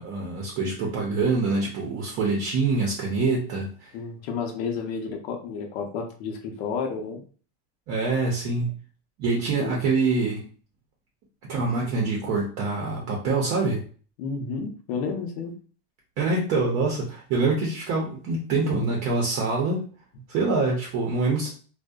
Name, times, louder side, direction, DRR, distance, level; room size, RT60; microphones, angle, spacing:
voice 1, 0.0-3.9 7.9-8.7 9.2-10.4 11.5-13.8 16.2-19.8 20.3-21.5, right 3 dB, 45° right, -1 dB, 0.6 m, -25 dB
voice 2, 3.9-7.2 9.6-9.8 14.2-15.5, left 5 dB, 75° left, 4 dB, 0.7 m, -31 dB
2.6 x 2.1 x 2.3 m, 0.40 s
supercardioid pair, 145°, 32 cm